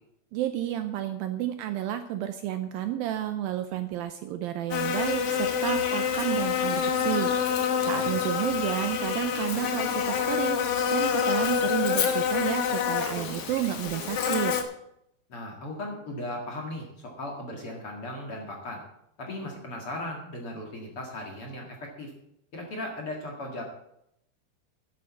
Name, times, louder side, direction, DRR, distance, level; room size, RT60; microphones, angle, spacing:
voice 1, 0.3-14.5, right 12 dB, 80° right, 8 dB, 2.2 m, -31 dB
Buzz, 4.7-14.6, left 7 dB, 70° left, 1.4 m, -27 dB
voice 2, 15.3-16.9 17.2-18.8 19.2-22.1 22.5-23.7, left 1 dB, 45° left, 0 dB, 2.2 m, -37 dB
10.5 x 8.5 x 7.4 m, 0.77 s
omnidirectional pair, 4.6 m